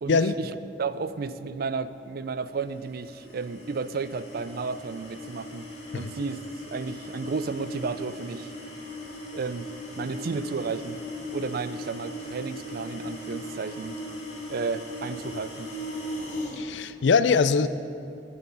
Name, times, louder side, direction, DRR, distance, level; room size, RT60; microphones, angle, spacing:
voice 1, 0.0-8.5 9.3-11.0 11.3-14.0 14.5-15.7, right 4 dB, 55° right, 14 dB, 0.4 m, -33 dB
sound 1, 2.7-16.6, left 1 dB, 40° left, 2.5 m, -38 dB
voice 2, 16.5-17.7, left 5 dB, 85° left, 14 dB, 0.5 m, -22 dB
11.0 x 10.5 x 5.6 m, 2.6 s
head